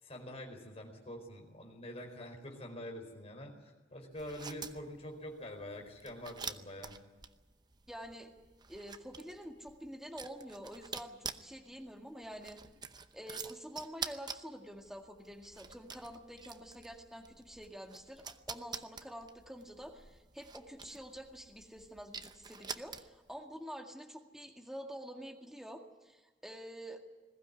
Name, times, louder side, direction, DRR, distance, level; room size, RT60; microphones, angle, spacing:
voice 1, 0.0-6.9, left 1 dB, 35° left, 2 dB, 4.5 m, -46 dB
sound 1, 4.1-23.4, right 5 dB, 25° right, 0.8 m, -48 dB
voice 2, 7.9-8.3 8.7-12.6 13.1-27.0, equal, ahead, 2 dB, 2.0 m, -47 dB
21.0 x 15.5 x 9.8 m, 1.3 s
head